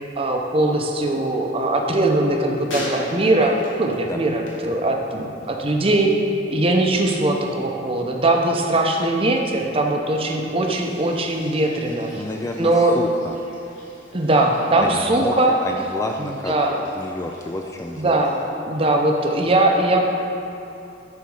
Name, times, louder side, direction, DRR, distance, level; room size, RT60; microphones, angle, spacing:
voice 1, 0.2-6.2 6.5-12.2 12.6-13.0 14.1-15.6 16.2-16.7 18.0-18.4 18.6-20.1, right 2 dB, 30° right, 2 dB, 0.7 m, -20 dB
sound 1, 1.2-5.6 5.9-6.4 10.6-18.5, left 1 dB, 75° left, 1.6 m, -41 dB
voice 2, 12.1-13.3 14.8-15.3 15.6-16.6 17.0-18.2, left 1 dB, 15° left, 2 dB, 0.3 m, -29 dB
10.5 x 4.1 x 4.8 m, 2.8 s
head